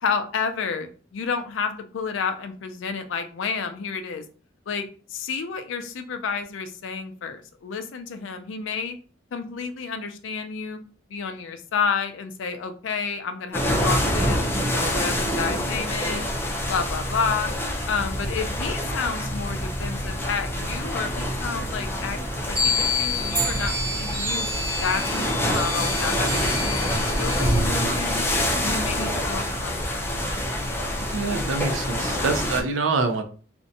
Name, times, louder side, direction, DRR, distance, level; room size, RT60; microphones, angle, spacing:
voice 1, 0.0-4.2 4.7-9.0 9.3-10.8 11.1-16.2 16.7-17.5 17.9-22.2 22.5-24.5 24.8-28.3 28.6-30.1, left 5 dB, 75° left, 8 dB, 0.4 m, -30 dB
sound 1, 13.5-32.6, equal, 10° left, 0.4 m, -26 dB
sound 2, 19.4-20.9 21.2-21.3 21.6-27.7, left 2 dB, 10° right, 0.8 m, -29 dB
voice 2, 31.1-33.2, right 4 dB, 80° right, 7 dB, 0.5 m, -25 dB
2.5 x 2.1 x 2.6 m, 0.40 s
head